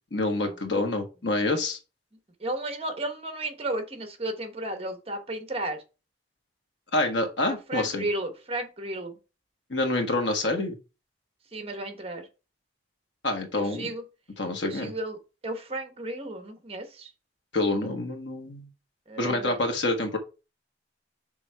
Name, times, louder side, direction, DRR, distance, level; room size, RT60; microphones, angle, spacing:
voice 1, 0.1-1.8 6.9-8.1 9.7-10.8 13.2-13.9 14.4-14.9 17.5-18.7 19.2-20.2, left 2 dB, 90° left, 5 dB, 1.4 m, -27 dB
voice 2, 2.4-5.8 7.5-9.2 11.5-12.3 13.6-14.0 14.6-15.2 15.4-17.1 19.1-19.6, right 1 dB, 35° right, 7 dB, 1.2 m, -33 dB
6.0 x 3.6 x 4.6 m, 0.30 s
head